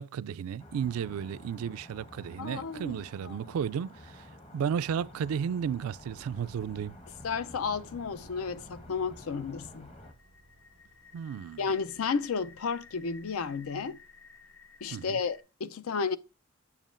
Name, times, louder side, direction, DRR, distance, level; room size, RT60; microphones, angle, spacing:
voice 1, 0.0-4.3 4.5-7.0 11.1-11.7 14.9-15.2, right 7 dB, 80° right, 0.3 m, -33 dB
sound 1, 0.6-10.1, left 1 dB, 25° left, 0.9 m, -51 dB
voice 2, 2.4-3.4 7.2-9.9 11.6-14.0 14.8-16.2, left 5 dB, 80° left, 0.5 m, -33 dB
sound 2, 2.6-15.4, left 2 dB, 65° left, 1.3 m, -56 dB
7.2 x 7.2 x 2.5 m
head